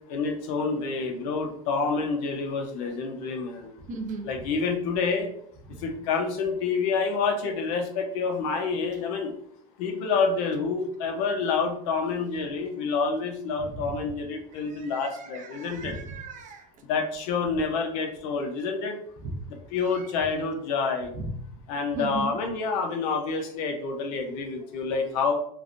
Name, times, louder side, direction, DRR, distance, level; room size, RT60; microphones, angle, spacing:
voice 1, 0.0-3.7 4.2-5.3 5.8-9.3 9.8-15.9 16.9-19.0 19.5-21.1 21.7-25.3, left 4 dB, 80° left, 4 dB, 0.7 m, -28 dB
voice 2, 3.9-4.3 5.7-5.8 13.6-13.9 14.5-16.7 19.2-19.3 19.9-20.1 21.1-21.3 21.9-22.3, right 3 dB, 40° right, 4 dB, 0.6 m, -37 dB
3.3 x 2.1 x 2.5 m, 0.67 s
supercardioid pair, 125°, 19 cm